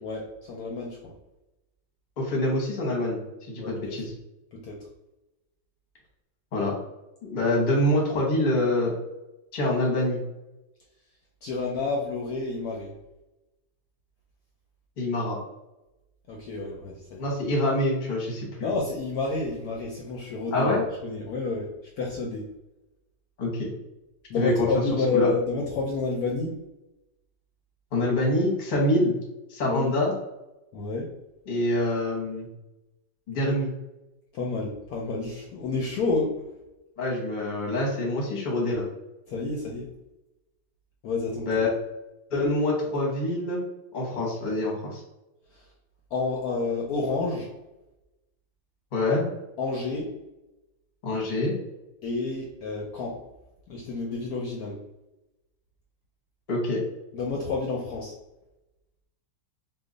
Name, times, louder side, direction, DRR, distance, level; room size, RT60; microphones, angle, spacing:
voice 1, 0.0-1.1 3.6-4.0 4.6-4.8 11.4-12.9 16.3-17.2 18.6-20.7 21.0-21.7 22.0-22.5 24.3-26.5 29.6-29.9 30.7-31.1 34.3-36.4 39.3-39.9 41.0-41.5 46.1-47.5 49.6-50.1 52.0-53.2 53.7-54.8 57.1-58.1, left 3 dB, 70° left, -2 dB, 0.9 m, -29 dB
voice 2, 2.2-3.2 3.5-4.1 6.5-6.7 7.2-8.9 9.5-10.2 15.0-15.4 17.2-18.7 20.5-20.8 23.4-23.7 24.4-24.8 25.1-25.3 27.9-29.2 29.5-30.1 31.5-32.5 33.3-33.7 37.0-38.9 41.5-41.7 42.3-43.6 43.9-45.0 48.9-49.3 51.0-51.5 56.5-56.8, left 1 dB, 40° left, -2 dB, 0.7 m, -25 dB
2.9 x 2.1 x 3.8 m, 0.98 s
omnidirectional pair, 1.9 m